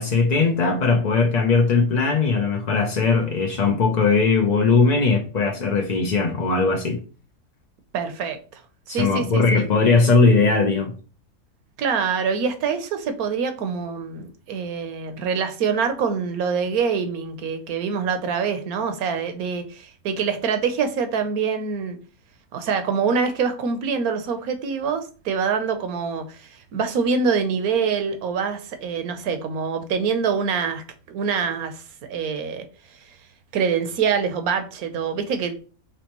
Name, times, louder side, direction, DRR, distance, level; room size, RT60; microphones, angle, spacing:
voice 1, 0.0-7.0 8.9-11.0, left 4 dB, 60° left, 0.4 m, -19 dB
voice 2, 7.9-8.6 8.9-9.7 11.8-22.0 22.5-32.7 33.5-35.5, right 6 dB, 75° right, 1.2 m, -25 dB
5.2 x 3.2 x 3.0 m
omnidirectional pair, 1.6 m